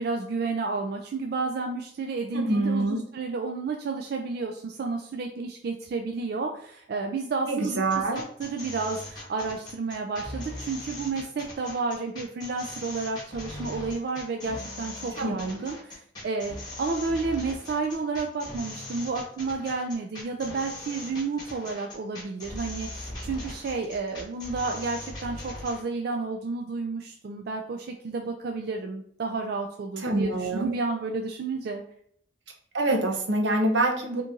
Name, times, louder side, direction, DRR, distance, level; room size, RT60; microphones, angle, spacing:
voice 1, 0.0-31.8, right 4 dB, 60° right, 3 dB, 0.4 m, -31 dB
voice 2, 2.3-3.0 7.5-8.2 15.2-15.6 30.0-30.7 32.7-34.2, right 2 dB, 85° right, 2 dB, 0.8 m, -25 dB
sound 1, 7.8-25.8, left 1 dB, 25° left, 1.1 m, -40 dB
2.9 x 2.6 x 3.6 m, 0.64 s
head